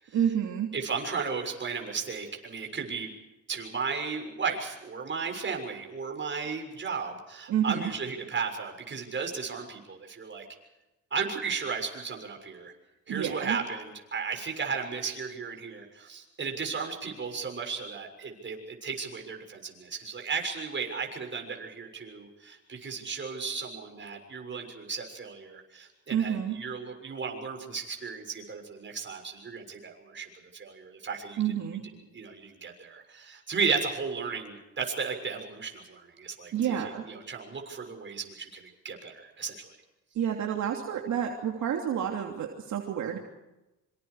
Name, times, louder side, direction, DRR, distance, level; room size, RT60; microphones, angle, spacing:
voice 1, 0.1-0.7 7.5-7.9 13.1-13.6 26.1-26.6 31.4-31.8 36.5-37.0 40.1-43.2, right 9 dB, 70° right, 1 dB, 3.0 m, -29 dB
voice 2, 0.7-3.1 3.5-10.5 11.1-12.7 13.1-31.4 32.1-36.8 37.0-39.7, right 5 dB, 40° right, 3 dB, 6.8 m, -35 dB
26.5 x 26.0 x 5.0 m, 1.0 s
cardioid pair, 90°, 30 cm